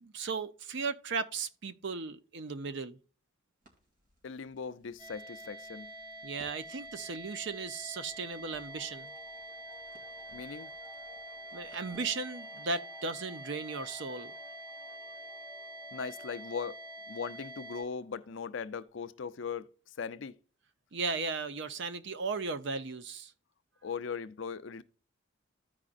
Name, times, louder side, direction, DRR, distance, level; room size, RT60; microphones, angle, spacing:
voice 1, 0.0-3.0 6.2-9.1 11.5-14.3 20.9-23.3, right 4 dB, 60° right, 0.6 m, -36 dB
Crackle, 3.6-12.8, right 1 dB, 40° right, 2.1 m, -65 dB
voice 2, 4.2-5.9 10.3-10.7 15.9-16.8 17.1-19.7 20.0-20.4 23.8-24.8, left 6 dB, 65° left, 0.5 m, -39 dB
sound 1, 5.0-17.8, right 1 dB, 25° right, 2.9 m, -46 dB
sound 2, 7.8-18.9, left 3 dB, 10° right, 1.3 m, -58 dB
14.5 x 4.9 x 2.5 m
head